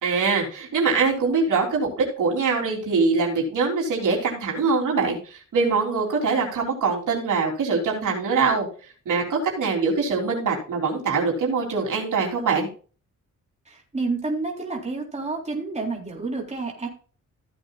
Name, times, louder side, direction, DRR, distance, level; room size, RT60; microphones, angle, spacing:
voice 1, 0.0-8.7 9.1-12.7, right 4 dB, 75° right, -1 dB, 3.7 m, -23 dB
voice 2, 13.7-16.9, right 3 dB, 20° right, -1 dB, 3.9 m, -29 dB
15.5 x 8.0 x 2.5 m, 0.38 s
cardioid pair, 115°, 31 cm